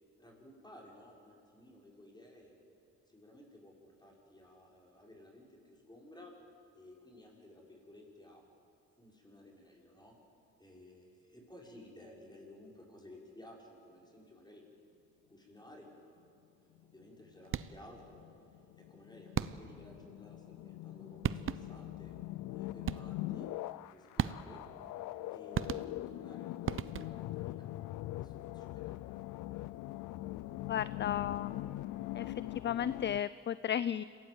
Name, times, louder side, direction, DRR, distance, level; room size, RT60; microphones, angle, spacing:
voice 1, 0.2-2.6 3.1-6.3 6.7-8.4 9.0-10.1 10.6-14.6 15.3-16.2 16.6-18.2 18.8-22.2 22.5-23.5 23.9-24.6 25.3-27.7 28.1-29.0, left 1 dB, 15° left, -1 dB, 6.3 m, -56 dB
sound 1, 16.8-33.2, left 16 dB, 90° left, 0.6 m, -42 dB
sound 2, 17.4-17.9 19.3-19.9 20.9-21.0 21.2-21.9 22.9-23.3 24.2-24.7 25.5-26.2 26.7-27.3, right 9 dB, 45° right, 0.7 m, -37 dB
voice 2, 30.7-31.6 32.1-32.2 32.6-34.0, left 9 dB, 40° left, 17 dB, 0.5 m, -34 dB
26.5 x 17.5 x 8.1 m, 2.5 s
cardioid pair, 90°, 30 cm